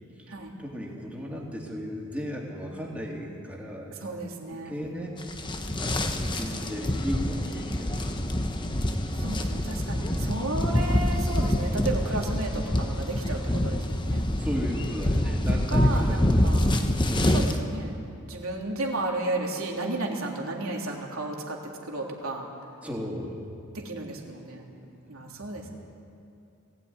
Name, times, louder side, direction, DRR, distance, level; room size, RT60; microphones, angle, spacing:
voice 1, 0.6-3.9 4.6-5.2 5.7-8.7 14.4-16.7 17.1-17.6 22.8-23.5 24.8-24.9, equal, 5° right, -2 dB, 3.1 m, -35 dB
voice 2, 3.9-5.3 5.6-5.8 6.6-6.8 9.2-14.3 15.7-16.7 17.2-18.0 18.3-21.6 21.8-22.5 23.7-24.7 25.1-25.7, right 2 dB, 70° right, -1 dB, 3.4 m, -33 dB
sound 1, 5.2-17.6, left 1 dB, 20° left, 1.1 m, -26 dB
21.0 x 17.0 x 9.6 m, 2.6 s
head